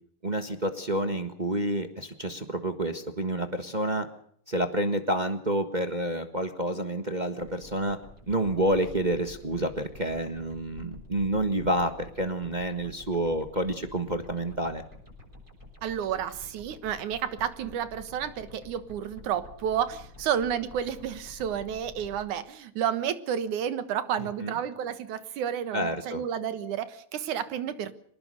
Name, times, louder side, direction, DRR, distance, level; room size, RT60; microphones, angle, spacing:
voice 1, 0.2-4.1 4.5-8.0 8.3-14.8 24.2-24.5 25.7-26.2, right 1 dB, 30° right, 7 dB, 0.7 m, -29 dB
sound 1, 7.4-22.2, left 3 dB, 15° right, 7.0 m, -49 dB
voice 2, 15.8-27.9, right 9 dB, 90° right, 12 dB, 2.9 m, -31 dB
24.5 x 20.0 x 6.6 m, 0.62 s
omnidirectional pair, 3.4 m